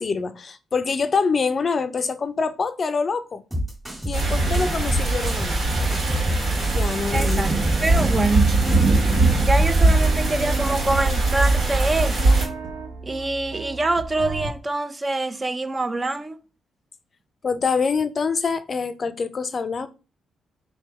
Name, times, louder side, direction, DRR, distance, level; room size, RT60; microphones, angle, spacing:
voice 1, 0.0-3.4 4.1-5.6 6.7-7.5 17.4-19.9, left 5 dB, 50° left, 0.4 m, -25 dB
sound 1, 3.5-9.0, equal, 10° right, 1.8 m, -29 dB
sound 2, 4.1-12.5, right 2 dB, 65° right, 1.7 m, -20 dB
voice 2, 7.1-8.6 9.4-12.4 13.0-16.4, right 2 dB, 30° right, 0.6 m, -25 dB
sound 3, 8.5-14.5, right 3 dB, 90° right, 0.7 m, -33 dB
3.4 x 2.7 x 4.5 m
supercardioid pair, 55°, 0 cm